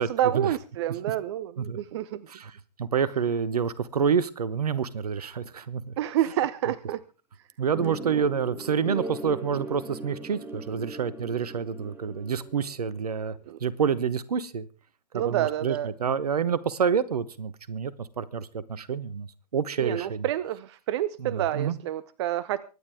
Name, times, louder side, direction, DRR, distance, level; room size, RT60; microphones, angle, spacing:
voice 1, 0.0-2.3 6.0-7.0 13.5-13.6 15.1-15.9 19.8-22.6, right 12 dB, 40° right, 17 dB, 0.8 m, -28 dB
voice 2, 2.3-5.9 7.6-13.3 13.6-14.7 15.1-19.3 19.5-20.3 21.2-21.8, right 6 dB, 65° right, 18 dB, 1.2 m, -28 dB
sound 1, 7.7-12.8, right 2 dB, 10° right, 2.9 m, -39 dB
24.5 x 9.9 x 3.6 m, 0.35 s
figure-of-eight pair, 115°, 21 cm